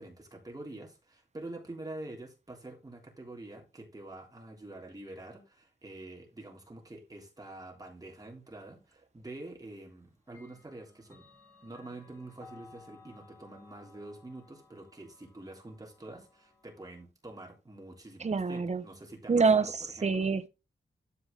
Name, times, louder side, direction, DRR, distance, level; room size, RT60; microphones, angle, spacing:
voice 1, 0.0-11.3 11.6-20.3, right 2 dB, 20° right, 3.4 m, -46 dB
Clock, 8.9-9.0 10.3-17.0, left 3 dB, 15° left, 2.8 m, -58 dB
voice 2, 18.2-18.8 19.3-20.5, right 4 dB, 35° right, 1.0 m, -26 dB
12.5 x 4.8 x 4.0 m
wide cardioid pair, 150°, 19 cm